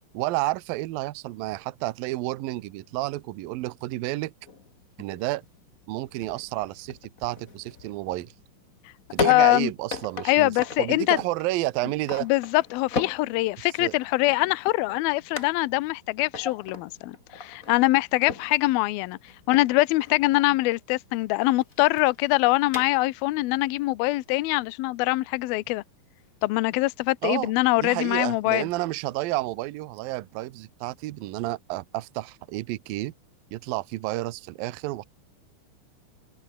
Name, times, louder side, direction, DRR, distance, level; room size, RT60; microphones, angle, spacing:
voice 1, 0.1-4.3 5.0-5.4 5.9-8.3 9.1-10.5 10.8-12.3 13.8-13.9 27.2-27.5 27.8-33.1 33.5-35.0, right 18 dB, 85° right, 2.1 m, -30 dB
sound 1, 4.5-23.3, left 5 dB, 60° left, 0.8 m, -38 dB
voice 2, 9.2-9.7 10.3-11.2 12.2-19.2 19.5-25.8 26.4-28.7, left 20 dB, 85° left, 2.2 m, -23 dB
omnidirectional pair, 5.4 m